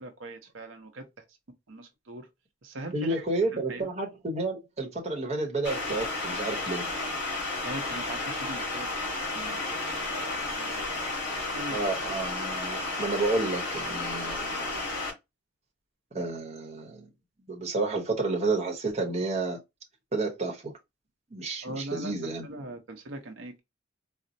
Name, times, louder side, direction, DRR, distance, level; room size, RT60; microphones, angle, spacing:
voice 1, 0.0-1.2 1.7-2.3 2.6-3.3 3.5-3.9 7.6-11.8 21.6-22.1 22.4-23.6, right 2 dB, 85° right, 0.7 m, -41 dB
voice 2, 2.9-6.9 11.7-14.8 16.1-17.1 17.5-19.6 20.1-20.7 21.3-22.5, right 3 dB, 35° right, 0.9 m, -31 dB
sound 1, 5.6-15.1, left 2 dB, 55° left, 2.3 m, -32 dB
4.2 x 2.0 x 2.6 m
head